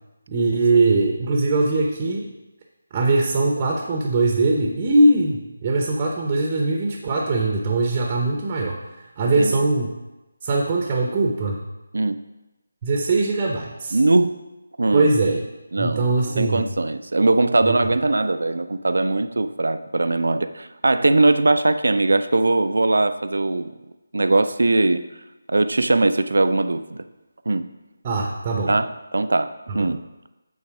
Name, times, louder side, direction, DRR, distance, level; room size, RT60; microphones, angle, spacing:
voice 1, 0.3-2.3 2.9-8.8 9.2-9.9 10.4-11.6 12.8-14.0 14.9-15.4 15.8-16.7 17.6-17.8 28.0-28.7 29.7-29.9, right 2 dB, 25° right, 0 dB, 0.8 m, -21 dB
voice 2, 13.9-14.4 14.8-15.1 15.7-16.1 16.4-23.8 24.1-25.0 25.5-27.0 27.5-27.7 28.7-30.0, right 2 dB, 75° right, 11 dB, 0.4 m, -20 dB
8.6 x 3.9 x 4.8 m, 1.0 s
figure-of-eight pair, 160°, 0 cm